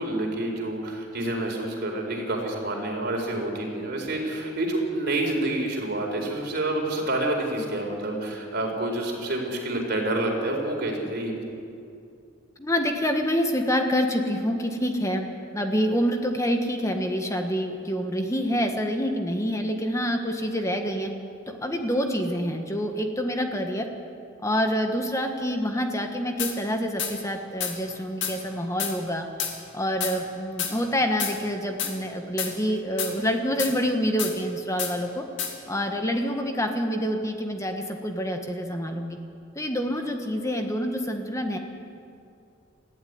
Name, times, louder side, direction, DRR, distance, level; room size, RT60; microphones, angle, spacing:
voice 1, 0.0-11.6, right 1 dB, 50° right, 1 dB, 4.5 m, -28 dB
voice 2, 12.6-15.3 15.5-21.1 21.6-23.9 24.4-29.3 29.7-35.2 35.7-39.2 39.5-41.6, equal, 15° left, 4 dB, 1.6 m, -27 dB
sound 1, 26.4-26.5 27.0-27.1 27.6-27.7 28.2-28.3 28.8-28.9 29.4-29.5 30.0-30.1 30.6-30.7 31.2-31.3 31.8-31.9 32.4-32.5 33.0-33.1 33.6-33.7 34.2-34.3 34.8-34.9 35.4-35.5, left 8 dB, 60° left, 2.6 m, -29 dB
21.0 x 15.0 x 9.5 m, 2.4 s
head